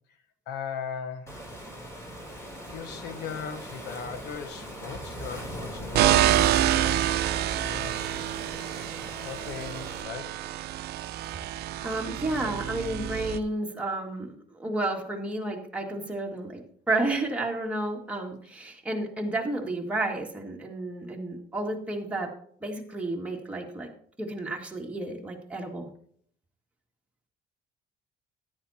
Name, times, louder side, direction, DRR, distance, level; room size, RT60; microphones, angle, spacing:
voice 1, 0.5-1.3 2.7-8.1 9.2-10.4, left 7 dB, 85° left, 9 dB, 1.1 m, -39 dB
Waves surf, 1.3-10.0, equal, 15° left, 3.2 m, -41 dB
sound 1, 5.9-13.4, right 12 dB, 70° right, 0.7 m, -27 dB
voice 2, 11.5-16.6 16.9-22.3 22.6-23.9 24.2-25.9, right 2 dB, 5° right, -1 dB, 2.1 m, -31 dB
13.5 x 9.9 x 2.9 m, 0.62 s
cardioid pair, 110°, 17 cm